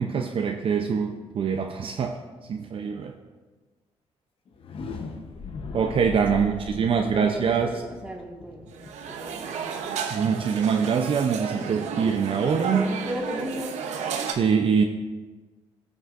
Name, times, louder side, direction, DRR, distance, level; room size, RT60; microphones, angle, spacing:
voice 1, 0.0-2.2 2.5-3.1 5.7-7.8 10.1-12.9 14.2-14.8, right 6 dB, 50° right, 4 dB, 0.6 m, -24 dB
sound 1, 4.5-10.3, left 4 dB, 55° left, 0.9 m, -39 dB
voice 2, 7.1-8.7 9.1-9.4 12.7-13.8, right 1 dB, 10° right, 0 dB, 1.7 m, -35 dB
sound 2, 8.7-14.3, right 6 dB, 85° right, 0.8 m, -33 dB
16.0 x 6.1 x 2.5 m, 1.3 s
cardioid pair, 80°, 12 cm